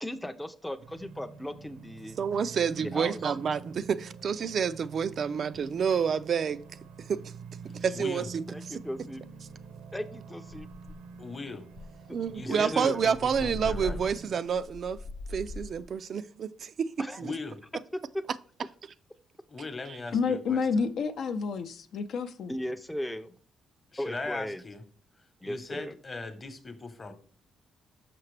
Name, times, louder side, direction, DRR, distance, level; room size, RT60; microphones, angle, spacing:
voice 1, 0.0-2.2 2.8-3.2 8.5-9.3 9.9-10.7 12.1-12.2 12.4-13.1 17.0-17.2 17.9-18.2 22.5-23.3 24.0-24.6 25.4-25.9, equal, 5° left, 0.5 m, -37 dB
sound 1, 0.8-14.4, right 5 dB, 80° right, 0.8 m, -46 dB
voice 2, 2.2-6.6 7.0-7.3 7.7-8.8 12.1-15.0 15.3-17.3 19.9-20.0, right 7 dB, 55° right, 0.3 m, -29 dB
voice 3, 7.9-8.3 11.2-11.7 12.3-14.0 17.2-17.6 19.5-20.8 23.9-24.8 25.4-27.1, left 3 dB, 30° left, 0.9 m, -39 dB
sound 2, 9.1-9.2 9.5-9.8 10.1-10.2 10.5-11.2 11.7-15.9, left 3 dB, 85° left, 0.9 m, -41 dB
voice 4, 20.1-22.5, left 5 dB, 70° left, 0.5 m, -29 dB
5.9 x 5.7 x 3.2 m
cardioid pair, 90°, 0 cm